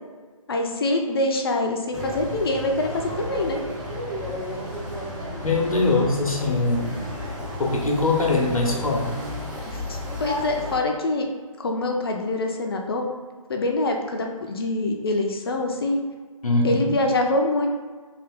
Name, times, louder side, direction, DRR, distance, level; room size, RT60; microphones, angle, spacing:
voice 1, 0.5-3.6 9.7-11.3 11.6-13.1 13.5-16.0 16.6-17.7, left 2 dB, 40° left, 2 dB, 0.6 m, -25 dB
sound 1, 1.9-10.8, left 1 dB, 30° right, 1.1 m, -32 dB
voice 2, 5.4-7.0 7.6-9.1 16.4-16.9, left 2 dB, 75° left, 1 dB, 0.9 m, -22 dB
3.4 x 2.9 x 3.5 m, 1.5 s
figure-of-eight pair, 155°, 18 cm